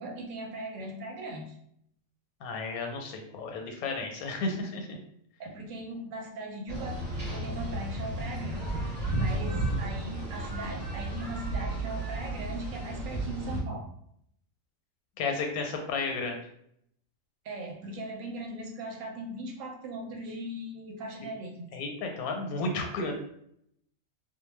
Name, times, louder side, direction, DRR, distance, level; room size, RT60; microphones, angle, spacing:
voice 1, 0.0-1.6 5.4-13.9 17.4-21.7, right 1 dB, 70° right, 1 dB, 0.9 m, -39 dB
voice 2, 2.4-5.0 15.2-16.4 21.7-23.2, left 3 dB, 85° left, 3 dB, 1.1 m, -33 dB
sound 1, 6.7-13.6, right 2 dB, 40° right, 0.6 m, -33 dB
2.2 x 2.2 x 3.1 m, 0.70 s
omnidirectional pair, 1.5 m